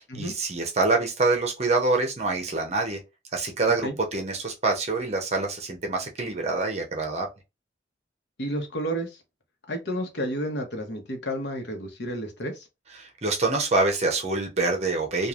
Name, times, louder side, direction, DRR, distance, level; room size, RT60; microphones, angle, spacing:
voice 1, 0.0-3.0 3.3-7.3 13.0-15.3, right 3 dB, 35° right, 0.7 m, -26 dB
voice 2, 8.4-9.2 9.7-12.7, equal, 70° left, 0.9 m, -31 dB
3.1 x 2.3 x 2.4 m
head